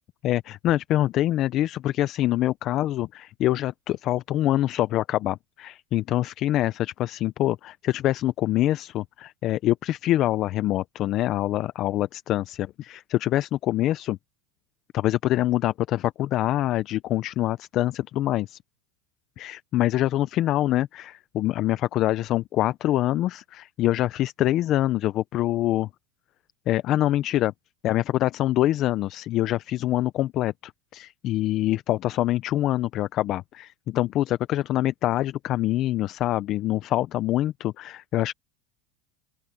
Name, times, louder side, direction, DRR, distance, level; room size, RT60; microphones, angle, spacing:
voice 1, 0.2-14.2 14.9-18.6 19.4-25.9 26.7-27.5 27.8-38.3, left 14 dB, 40° left, 0.5 m, -25 dB
open air
supercardioid pair, 155°, 0 cm